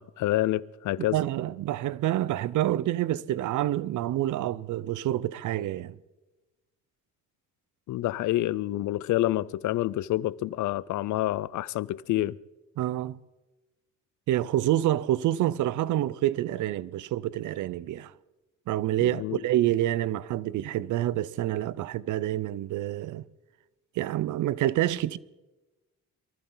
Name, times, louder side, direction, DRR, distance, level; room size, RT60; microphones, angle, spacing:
voice 1, 0.0-1.2 7.9-12.4 19.0-19.4, left 15 dB, 75° left, 0.6 m, -28 dB
voice 2, 1.1-6.0 12.8-13.2 14.3-18.1 18.7-23.2 24.0-25.2, right 13 dB, 75° right, 0.7 m, -27 dB
23.0 x 14.5 x 3.9 m
cardioid pair, 90°, 30 cm